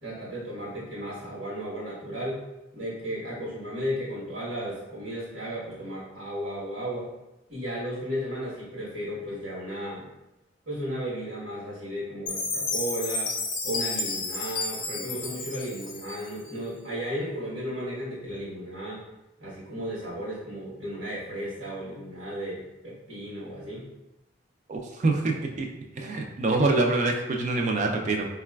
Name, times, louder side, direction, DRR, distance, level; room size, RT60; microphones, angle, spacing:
voice 1, 0.0-2.4 2.7-7.1 7.5-10.1 10.7-13.3 13.6-19.0 19.4-23.9, equal, 80° right, -9 dB, 1.0 m, -34 dB
Chime, 12.3-16.5, left 3 dB, 45° left, 0.4 m, -31 dB
voice 2, 24.7-25.7 26.0-28.3, right 3 dB, 40° right, 2 dB, 0.3 m, -25 dB
3.9 x 2.3 x 2.2 m, 0.94 s
head